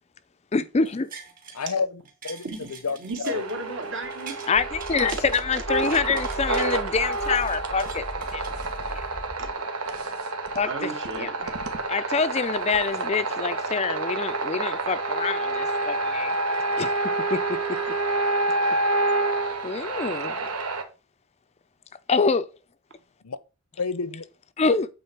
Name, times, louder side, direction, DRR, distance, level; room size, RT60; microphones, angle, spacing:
voice 1, 0.5-1.1 4.5-8.0 8.3-8.4 8.9-9.0 10.5-11.5 11.9-16.3 16.8-16.9 17.3-17.4 19.6-20.3 22.1-22.5 24.6-24.9, left 4 dB, 30° left, 0.4 m, -26 dB
sound 1, 0.9-1.7 2.1-4.5 4.8-6.8 7.1-9.1 9.6-9.7, right 6 dB, 40° right, 2.6 m, -44 dB
voice 2, 1.5-3.0 3.2-3.4 23.2-23.4 23.8-24.2, left 5 dB, 90° left, 0.7 m, -30 dB
voice 3, 2.4-4.5 5.1-5.2 5.8-6.2 9.4-9.5 10.6-11.4, right 2 dB, 60° right, 2.2 m, -34 dB
sound 2, 3.3-20.8, right 2 dB, 80° right, 1.5 m, -28 dB
sound 3, 4.5-9.5, equal, 10° right, 0.9 m, -39 dB
8.5 x 4.1 x 5.9 m
head